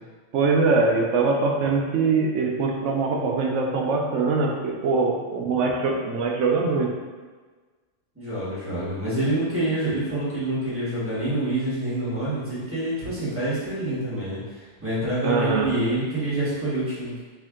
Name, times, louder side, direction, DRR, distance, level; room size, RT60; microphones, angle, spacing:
voice 1, 0.3-6.9 15.2-15.7, right 4 dB, 75° right, 0 dB, 0.9 m, -22 dB
voice 2, 8.1-17.2, right 1 dB, 10° right, -10 dB, 1.3 m, -27 dB
3.5 x 2.6 x 3.6 m, 1.4 s
omnidirectional pair, 1.3 m